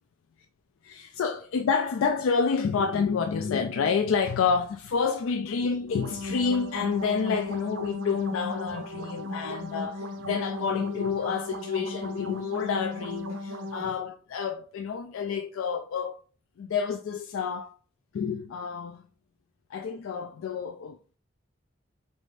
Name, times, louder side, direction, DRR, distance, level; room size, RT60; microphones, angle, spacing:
voice 1, 0.8-16.2 16.6-17.7 18.1-19.0 19.7-21.0, left 5 dB, 90° left, 0.3 m, -29 dB
sound 1, 5.9-13.8, left 1 dB, 80° right, 0.7 m, -36 dB
4.1 x 2.6 x 3.2 m
head